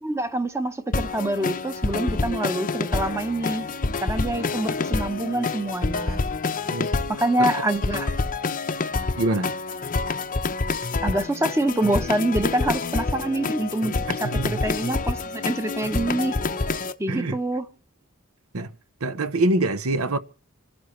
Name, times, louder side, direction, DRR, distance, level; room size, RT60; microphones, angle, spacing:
voice 1, 0.0-3.7 4.0-6.2 7.1-8.1 11.0-16.4 17.0-17.7, right 1 dB, 15° right, 1.0 m, -26 dB
sound 1, 0.9-16.9, left 3 dB, 40° left, 0.7 m, -27 dB
voice 2, 9.2-9.5 14.1-14.6 17.1-17.4 18.5-18.7 19.0-20.2, right 2 dB, 70° right, 0.9 m, -25 dB
27.5 x 11.5 x 3.1 m
head